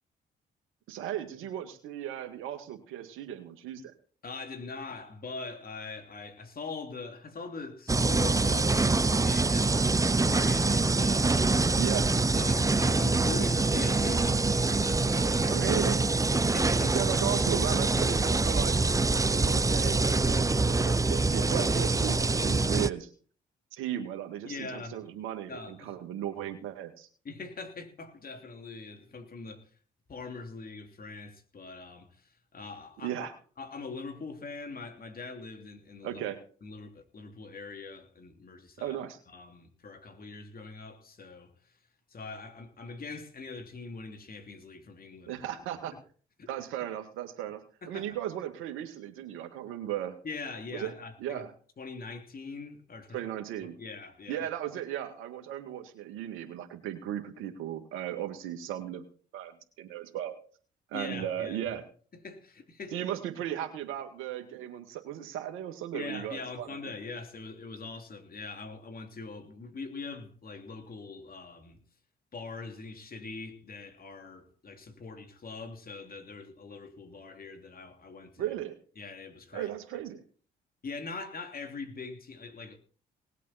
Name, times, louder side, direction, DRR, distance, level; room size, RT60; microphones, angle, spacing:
voice 1, 0.9-3.9 11.8-12.1 15.5-16.0 16.9-18.8 19.3-23.1 23.7-27.1 33.0-33.3 36.0-36.4 38.8-39.2 45.3-45.9 46.5-47.6 47.9-50.2 50.7-51.0 51.2-51.5 53.1-53.8 54.3-59.0 59.3-60.3 60.9-61.9 62.9-66.9 78.4-78.8 79.5-80.2, right 11 dB, 80° right, 2.2 m, -36 dB
voice 2, 4.2-11.9 12.3-15.7 16.3-17.0 24.4-25.0 25.5-25.9 27.2-29.7 30.1-33.3 33.6-36.2 36.6-39.0 39.3-41.8 42.1-45.4 46.4-46.5 47.8-48.2 50.2-51.4 51.8-53.3 53.8-54.5 60.9-61.7 62.1-63.0 65.9-71.8 72.3-78.5 79.0-79.7 80.8-82.8, left 4 dB, 45° left, 3.2 m, -42 dB
sound 1, 7.9-22.9, right 3 dB, 15° right, 0.6 m, -25 dB
19.5 x 8.3 x 4.3 m
supercardioid pair, 55°, 20 cm